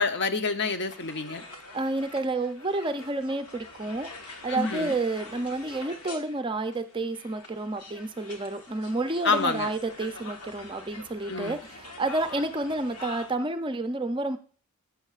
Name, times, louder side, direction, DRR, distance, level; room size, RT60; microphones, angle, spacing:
voice 1, 0.0-1.4 4.5-4.9 9.2-9.7 11.3-11.6, left 4 dB, 50° left, 9 dB, 0.8 m, -27 dB
sound 1, 0.9-13.4, left 2 dB, 90° left, 1.4 m, -45 dB
voice 2, 1.7-14.4, right 2 dB, 20° right, 9 dB, 0.5 m, -30 dB
11.5 x 8.3 x 2.4 m, 0.42 s
head